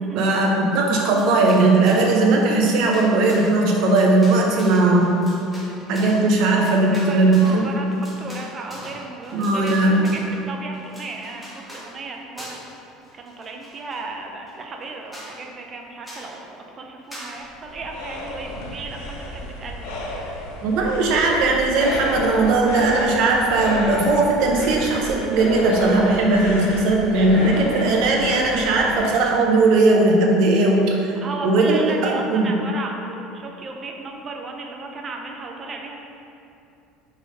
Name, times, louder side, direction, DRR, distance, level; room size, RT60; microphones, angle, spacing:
voice 1, 0.1-5.2 5.9-7.7 9.3-10.1 20.6-31.1 31.4-32.6, right 2 dB, 55° right, 0 dB, 0.9 m, -18 dB
sound 1, 1.0-2.2 2.5-10.3 10.7-11.9 12.4-12.8 13.0-14.0 14.5-14.6 14.8-14.9 15.1-15.3 16.0-16.3 17.1-17.3, equal, 5° left, 1.1 m, -42 dB
voice 2, 6.9-12.6 13.1-19.9 31.2-36.0, right 3 dB, 25° right, 2 dB, 0.5 m, -35 dB
sound 2, 17.3-29.2, left 1 dB, 80° left, 0.9 m, -31 dB
5.6 x 3.5 x 5.1 m, 2.7 s
cardioid pair, 170°, 0 cm